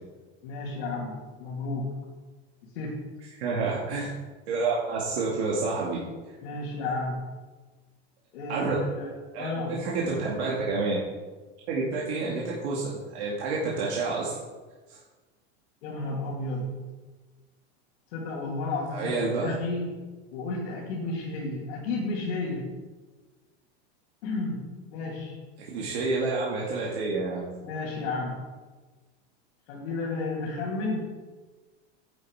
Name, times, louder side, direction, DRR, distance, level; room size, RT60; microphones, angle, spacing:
voice 1, 0.4-2.1 2.6-3.0 6.4-7.3 8.3-9.8 15.8-16.9 18.1-19.9 20.3-22.7 24.2-25.4 27.6-28.5 29.7-31.0, left 2 dB, 70° left, -6 dB, 2.7 m, -32 dB
voice 2, 3.3-4.1 4.5-6.0 6.3-6.4 8.5-8.8 9.3-11.0 11.7-14.4 14.9-15.0 18.9-19.5 25.7-27.5, right 3 dB, 75° right, -5 dB, 2.4 m, -29 dB
10.5 x 7.8 x 4.8 m, 1.3 s
supercardioid pair, 165°, 33 cm